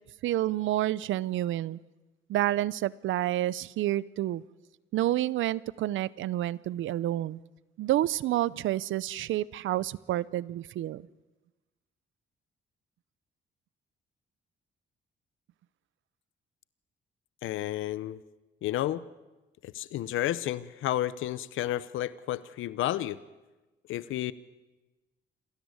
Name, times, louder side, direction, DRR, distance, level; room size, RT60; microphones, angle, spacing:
voice 1, 0.2-1.8 2.3-4.4 4.9-7.4 7.8-11.0, right 14 dB, 75° right, 21 dB, 0.7 m, -29 dB
voice 2, 17.4-18.2 18.6-19.0 19.6-23.2 23.9-24.3, left 13 dB, 85° left, 16 dB, 0.8 m, -31 dB
27.5 x 13.5 x 9.7 m, 1.1 s
cardioid pair, 90°, 20 cm